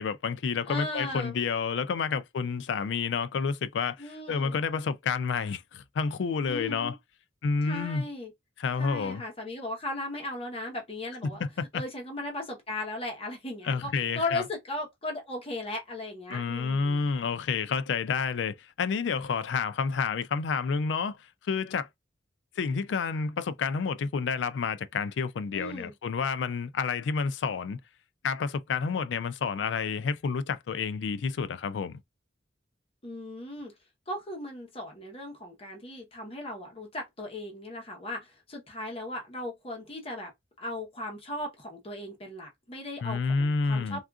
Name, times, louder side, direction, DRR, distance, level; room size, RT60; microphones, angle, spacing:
voice 1, 0.0-7.0 7.4-8.1 8.6-9.2 11.2-11.8 13.6-14.4 16.3-21.2 21.5-21.9 22.6-27.8 28.2-32.0 43.0-44.0, left 5 dB, 75° left, 0.4 m, -29 dB
voice 2, 0.7-1.4 4.0-4.6 6.5-6.9 7.6-8.3 8.8-11.5 11.7-13.9 14.1-17.1 25.5-25.9 33.0-33.7 34.1-40.3 40.6-44.0, left 2 dB, 35° left, 0.9 m, -37 dB
3.5 x 2.4 x 2.3 m
head